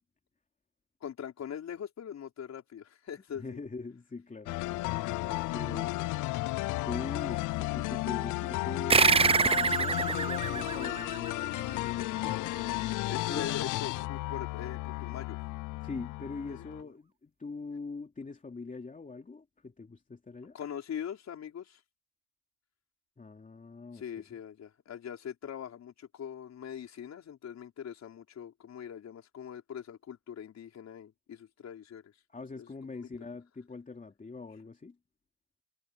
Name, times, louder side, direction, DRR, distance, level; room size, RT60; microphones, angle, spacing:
voice 1, 1.0-3.6 5.2-5.9 13.1-15.4 16.5-16.6 20.5-21.8 23.9-32.2 32.6-32.7 33.0-33.3, left 8 dB, 60° left, 4.9 m, -42 dB
voice 2, 3.3-4.9 5.5-6.0 6.7-13.5 15.8-20.5 23.2-24.2 32.3-35.0, left 4 dB, 25° left, 3.0 m, -43 dB
sound 1, 4.5-16.8, left 19 dB, 85° left, 0.5 m, -33 dB
sound 2, 8.9-11.9, right 5 dB, 20° right, 0.4 m, -26 dB
cardioid pair, 90°, 30 cm